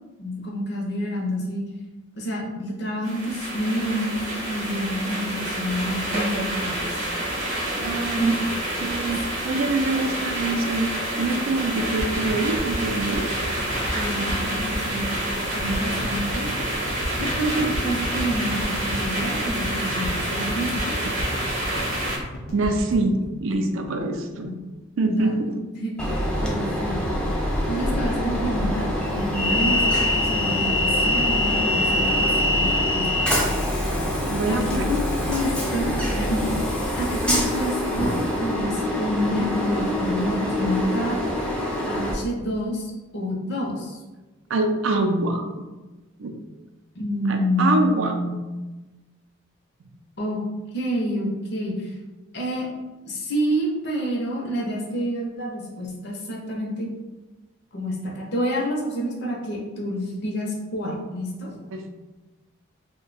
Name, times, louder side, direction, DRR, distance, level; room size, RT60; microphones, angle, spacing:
voice 1, 0.2-1.6 2.2-4.2 4.4-7.0 8.2-8.3 9.0-9.1 13.9-15.1 15.5-16.5 17.2-21.0 24.3-24.5 25.0-26.1 26.4-27.0 27.2-27.3 27.7-33.1 34.5-36.6 36.9-41.2 41.9-44.0 47.0-48.4 50.2-50.4 50.7-51.9 52.3-52.7 53.0-56.9 57.7-61.5, equal, 50° left, -2 dB, 0.6 m, -28 dB
sound 1, 3.0-22.2, right 1 dB, 35° right, 0.8 m, -28 dB
voice 2, 7.8-8.4 8.8-10.9 11.2-13.3 22.5-24.6 25.0-25.6 34.3-34.9 44.5-45.5 46.2-46.4 47.3-48.1 61.7-61.9, right 2 dB, 70° right, 5 dB, 0.4 m, -25 dB
sound 2, 12.0-24.1 24.4-24.5 24.7-24.8, equal, 90° left, 0.8 m, -33 dB
Train, 26.0-42.1, left 1 dB, 5° left, 0.4 m, -24 dB
2.6 x 2.1 x 3.9 m, 1.2 s
head